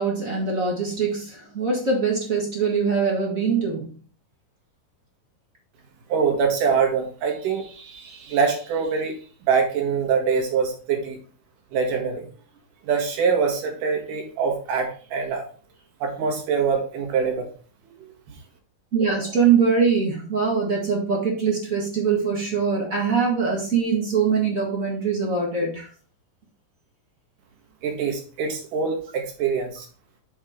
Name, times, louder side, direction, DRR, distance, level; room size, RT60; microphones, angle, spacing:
voice 1, 0.0-3.9 18.9-25.9, right 5 dB, 35° right, -2 dB, 1.4 m, -23 dB
voice 2, 6.1-9.1 9.5-11.2 11.7-12.3 12.8-15.5 16.0-17.5 18.0-18.4 27.8-29.9, right 6 dB, 70° right, 2 dB, 3.0 m, -24 dB
7.3 x 3.6 x 4.9 m, 0.40 s
omnidirectional pair, 3.9 m